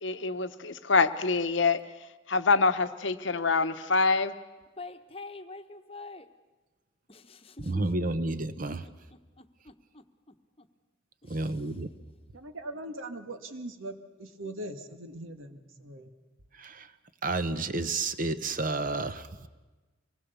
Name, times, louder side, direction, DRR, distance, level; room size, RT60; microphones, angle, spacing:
voice 1, 0.0-1.8 2.3-4.3, left 4 dB, 65° left, 0.9 m, -25 dB
voice 2, 4.8-6.3 7.1-7.8 8.8-8.9 9.4-10.0 10.6-10.7 11.2-11.4, left 3 dB, 30° left, 1.1 m, -45 dB
voice 3, 7.6-8.9 11.2-11.9 16.6-16.9 17.2-19.3, right 2 dB, 45° right, 0.9 m, -30 dB
voice 4, 12.3-16.1, right 1 dB, 85° right, 1.7 m, -41 dB
24.5 x 19.5 x 6.9 m
head